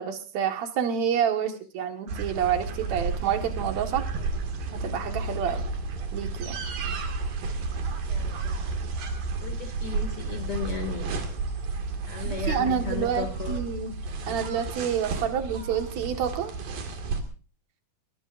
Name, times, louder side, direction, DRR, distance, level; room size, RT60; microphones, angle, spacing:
voice 1, 0.0-4.0 4.8-5.6 6.1-6.6 12.2-14.0 14.3-16.5, right 8 dB, 55° right, 5 dB, 2.7 m, -28 dB
sound 1, 2.1-17.2, right 4 dB, 75° right, 4.0 m, -32 dB
voice 2, 8.1-8.6 9.4-11.1 12.1-13.6, left 6 dB, 40° left, 5 dB, 3.0 m, -36 dB
22.0 x 22.0 x 2.6 m, 0.35 s
omnidirectional pair, 4.1 m